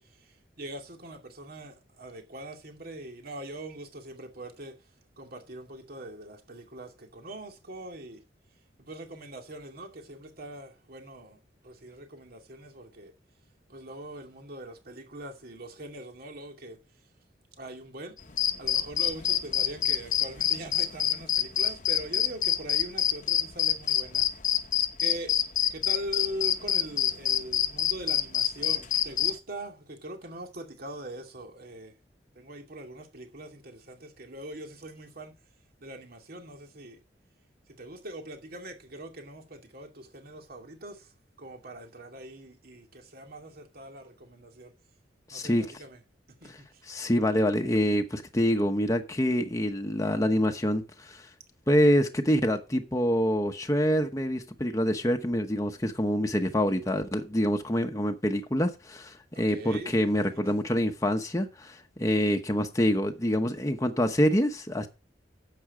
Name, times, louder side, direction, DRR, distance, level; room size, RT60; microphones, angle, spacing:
voice 1, 0.0-4.7 5.2-8.2 8.8-13.1 13.7-16.8 17.6-18.2 18.6-24.3 25.0-25.3 25.7-31.9 32.4-35.3 35.8-37.0 37.8-41.1 41.4-44.7 45.3-46.0 46.4-46.8 56.2-56.8 59.3-60.0 60.6-60.7, right 1 dB, 55° right, 2.4 m, -42 dB
sound 1, 18.2-29.3, left 10 dB, 45° left, 0.9 m, -25 dB
voice 2, 45.3-45.7 46.5-46.6 46.8-51.3 51.7-64.9, equal, 20° left, 1.0 m, -26 dB
11.0 x 7.8 x 4.9 m
head